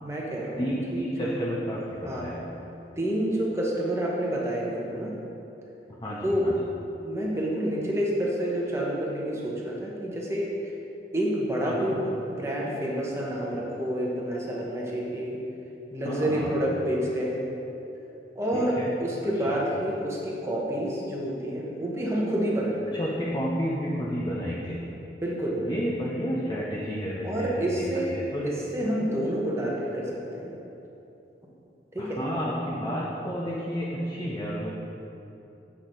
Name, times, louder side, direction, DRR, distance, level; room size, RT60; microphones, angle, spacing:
voice 1, 0.0-0.6 0.9-1.4 2.0-2.3 3.0-5.1 6.2-6.5 7.0-10.5 11.1-15.4 15.9-17.5 18.3-22.8 25.2-25.6 27.2-28.2 28.4-30.6 31.9-32.2, right 1 dB, 15° right, -4 dB, 1.0 m, -28 dB
voice 2, 0.6-2.4 6.0-6.5 11.6-12.0 16.0-16.5 18.5-18.9 19.5-19.6 22.9-24.8 25.6-28.5 32.0-34.7, equal, 25° left, -6 dB, 0.7 m, -31 dB
8.1 x 6.1 x 4.0 m, 2.9 s
head